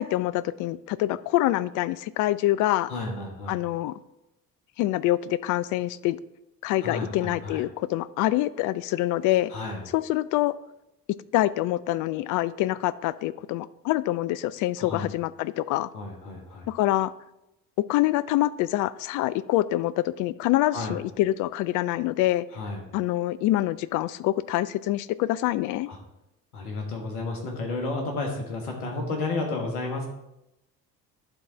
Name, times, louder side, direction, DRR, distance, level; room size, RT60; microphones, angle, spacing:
voice 1, 0.0-2.9 3.5-3.9 4.8-6.2 6.6-9.5 9.9-10.5 11.3-15.9 16.7-17.1 17.9-22.5 22.9-25.9, left 15 dB, 45° left, 17 dB, 0.4 m, -25 dB
voice 2, 2.9-3.5 6.8-7.6 9.5-9.8 14.8-15.1 15.9-16.7 20.7-20.9 22.5-22.8 25.9-26.0 26.5-30.1, left 3 dB, 70° left, 2 dB, 1.7 m, -32 dB
11.5 x 3.9 x 4.6 m, 0.88 s
figure-of-eight pair, 50°, 47 cm